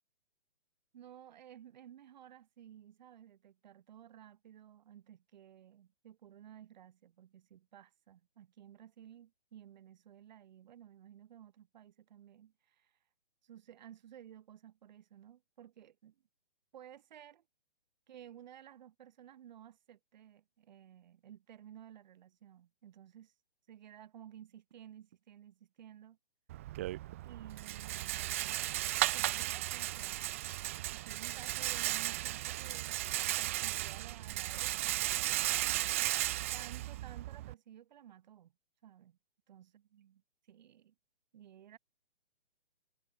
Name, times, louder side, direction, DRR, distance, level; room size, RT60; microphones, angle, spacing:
voice 1, 0.9-12.9 13.4-16.2 16.7-17.4 18.1-23.3 23.7-26.2 27.2-28.7 29.1-30.3 30.9-35.6 36.5-38.5 38.8-39.2 39.5-40.2 40.5-40.9 41.3-41.8, right 10 dB, 45° right, 7.1 m, -55 dB
Rattle, 26.5-37.5, right 16 dB, 15° right, 0.5 m, -35 dB
hypercardioid pair, 155°, 31 cm